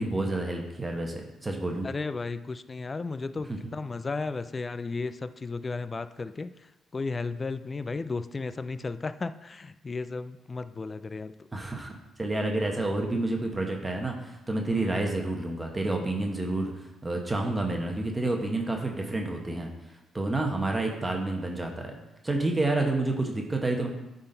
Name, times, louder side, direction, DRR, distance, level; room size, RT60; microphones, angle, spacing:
voice 1, 0.0-1.9 3.5-3.6 11.5-22.0 22.2-23.9, right 2 dB, 20° right, 1 dB, 1.0 m, -29 dB
voice 2, 1.8-6.5 6.9-11.3 14.7-15.0, left 3 dB, 30° left, 12 dB, 0.3 m, -34 dB
9.8 x 3.9 x 3.9 m, 0.97 s
cardioid pair, 90°, 0 cm